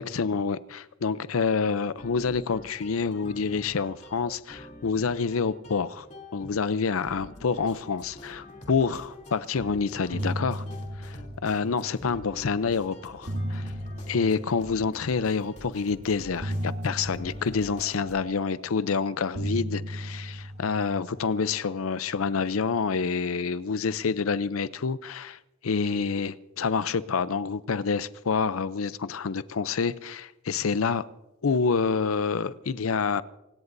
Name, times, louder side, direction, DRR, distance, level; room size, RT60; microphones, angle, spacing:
voice 1, 0.0-6.1 6.3-10.6 11.4-13.6 14.1-31.1 31.4-33.2, left 5 dB, 80° left, 0.6 m, -27 dB
sound 1, 2.0-18.2, left 1 dB, 35° left, 3.0 m, -47 dB
sound 2, 9.5-9.7 10.0-12.3 13.0-15.4 16.4-18.9 19.3-21.9, equal, 50° right, 2.8 m, -36 dB
28.5 x 17.5 x 2.7 m
head